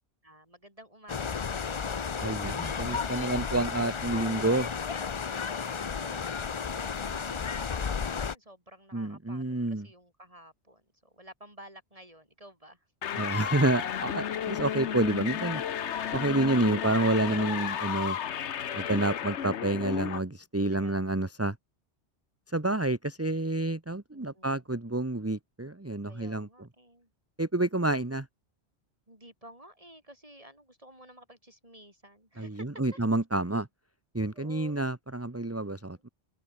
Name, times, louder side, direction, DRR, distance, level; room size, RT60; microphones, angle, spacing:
voice 1, 0.2-2.2 5.5-12.9 20.7-21.2 24.1-24.7 26.1-27.1 29.1-33.0 34.3-34.9 35.9-36.0, right 1 dB, 30° right, 7.7 m, -53 dB
sound 1, 1.1-8.4, left 6 dB, 35° left, 0.5 m, -33 dB
voice 2, 2.2-4.7 8.9-9.9 13.2-15.6 16.1-18.2 18.7-21.5 22.5-26.5 27.4-28.3 32.4-33.7 34.1-36.1, right 2 dB, 15° right, 1.2 m, -29 dB
sound 2, 13.0-20.2, left 9 dB, 85° left, 1.2 m, -33 dB
omnidirectional pair, 1.1 m